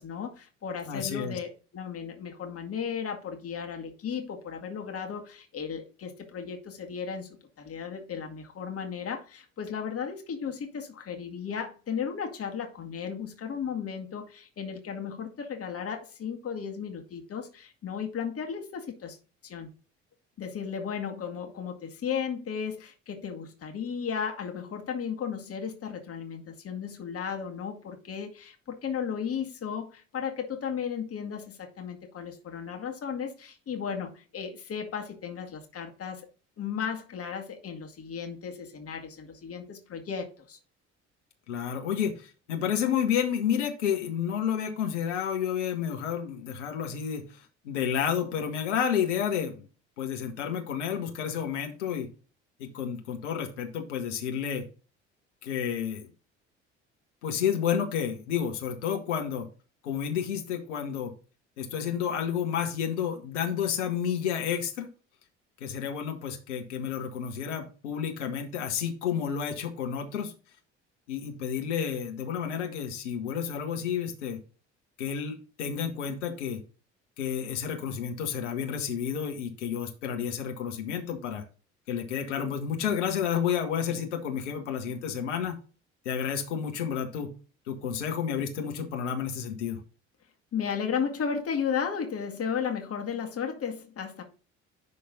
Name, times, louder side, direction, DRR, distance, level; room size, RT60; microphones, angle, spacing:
voice 1, 0.0-7.3 7.6-19.2 19.4-19.7 20.4-36.3 36.6-40.6 90.5-94.2, left 7 dB, 40° left, 2.1 m, -35 dB
voice 2, 0.9-1.4 41.5-47.3 47.6-49.7 50.0-52.1 52.6-54.7 55.4-56.1 57.2-59.5 59.8-61.1 61.6-64.9 65.6-70.3 71.1-74.4 75.0-76.6 77.2-81.4 81.9-85.6 86.0-87.3 87.7-89.8, left 8 dB, 75° left, 1.5 m, -30 dB
11.0 x 3.8 x 3.8 m
figure-of-eight pair, 55°, 36 cm